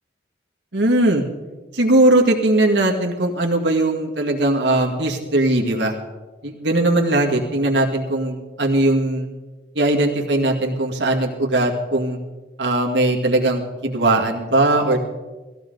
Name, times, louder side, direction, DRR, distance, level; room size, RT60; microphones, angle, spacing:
voice 1, 0.7-1.2 1.7-6.0 6.4-9.3 9.7-12.2 12.6-15.1, right 2 dB, 75° right, 1 dB, 2.1 m, -19 dB
18.5 x 15.0 x 4.0 m, 1.2 s
head